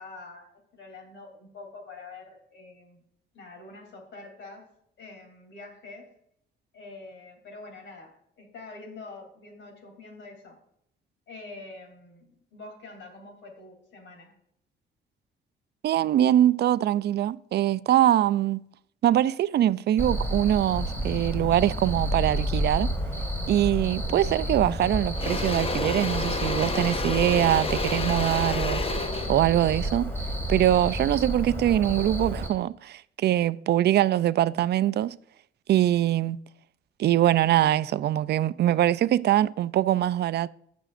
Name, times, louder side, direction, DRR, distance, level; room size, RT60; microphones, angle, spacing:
voice 1, 0.0-3.0 3.3-4.7 5.0-6.1 6.7-10.6 11.3-14.3, left 3 dB, 70° left, 3.1 m, -45 dB
voice 2, 15.8-18.6 19.0-22.9 23.5-28.8 29.3-30.1 30.5-35.2 35.7-36.4 37.0-40.5, right 12 dB, 55° right, 0.4 m, -23 dB
Cricket, 20.0-32.5, right 1 dB, 10° left, 2.2 m, -30 dB
Engine / Drill, 24.3-24.5 24.8-31.0, left 4 dB, 30° left, 0.7 m, -31 dB
15.5 x 6.1 x 2.5 m
cardioid pair, 90°, 20 cm